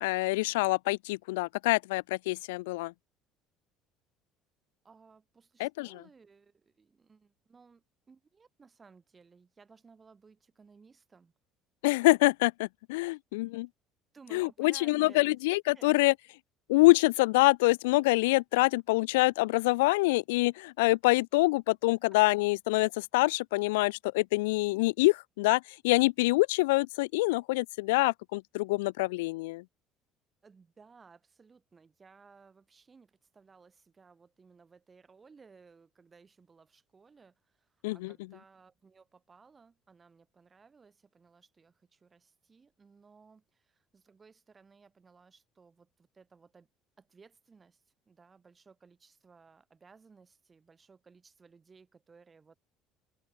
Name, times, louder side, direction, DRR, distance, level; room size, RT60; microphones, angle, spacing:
voice 1, 0.0-2.9 5.6-6.0 11.8-13.7 14.3-16.1 16.7-29.6 37.8-38.1, left 22 dB, 85° left, 0.4 m, -26 dB
voice 2, 4.8-11.3 13.1-13.2 13.5-13.6 14.1-15.4 15.7-15.9 30.4-46.7 47.0-52.6, right 5 dB, 30° right, 5.6 m, -59 dB
supercardioid pair, 75°, 0 cm